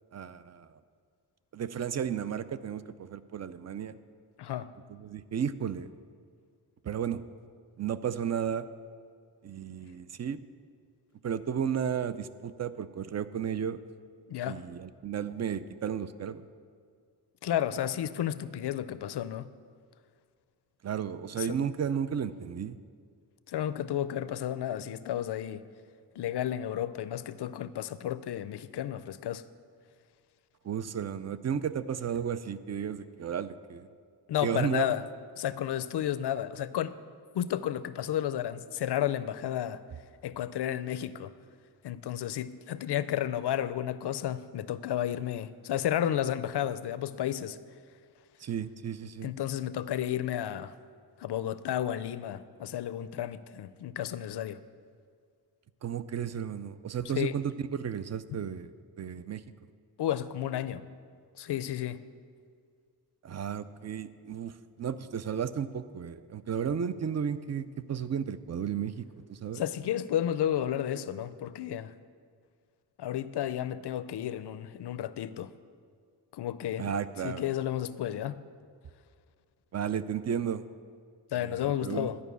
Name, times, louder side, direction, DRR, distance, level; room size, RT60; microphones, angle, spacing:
voice 1, 0.1-0.7 1.5-4.0 4.9-5.9 6.8-7.2 7.8-8.7 9.4-10.4 11.2-13.8 14.5-16.4 20.8-22.8 30.6-33.9 34.4-34.9 48.4-49.3 55.8-58.7 59.0-59.4 63.2-69.6 76.8-77.5 79.7-80.6 81.3-82.1, right 8 dB, 40° right, 13 dB, 0.4 m, -33 dB
voice 2, 4.4-4.7 14.3-14.6 17.4-19.5 21.4-21.6 23.5-25.6 26.2-29.4 34.3-35.0 35.4-36.9 37.3-39.8 40.2-41.3 41.8-47.6 49.2-50.7 51.2-54.6 57.1-57.3 60.0-60.8 61.4-62.0 69.5-71.9 73.0-75.5 76.3-76.9 77.2-78.4 81.3-82.2, left 11 dB, 75° left, 14 dB, 0.5 m, -32 dB
11.5 x 5.4 x 8.2 m, 2.1 s
wide cardioid pair, 100°, 41 cm